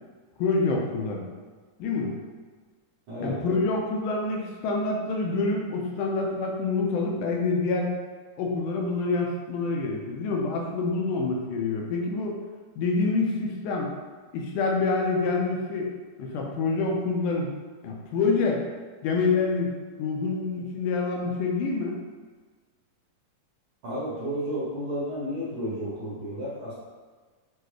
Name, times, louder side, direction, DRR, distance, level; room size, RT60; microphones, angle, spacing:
voice 1, 0.4-1.3 1.8-2.1 3.2-7.9 8.4-12.4 12.8-13.9 14.3-15.9 16.2-17.5 17.8-18.6 19.0-19.7 20.0-22.0, left 3 dB, 80° left, 0 dB, 2.1 m, -26 dB
voice 2, 23.8-26.7, equal, 85° right, -8 dB, 1.1 m, -32 dB
6.8 x 2.4 x 3.1 m, 1.4 s
omnidirectional pair, 3.8 m